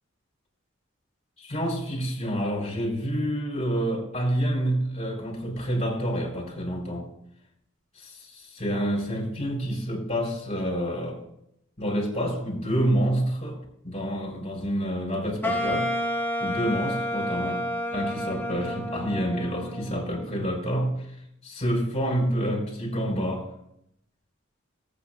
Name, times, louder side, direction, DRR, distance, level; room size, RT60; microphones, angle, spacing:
voice 1, 1.4-7.1 8.0-11.2 11.8-13.6 13.8-15.9 16.4-17.7 17.9-21.0 21.4-23.5, equal, 30° left, -2 dB, 4.6 m, -28 dB
Wind instrument woodwind instrument, 15.4-20.4, left 1 dB, 10° left, 1.0 m, -30 dB
19.0 x 8.8 x 2.2 m, 0.73 s
head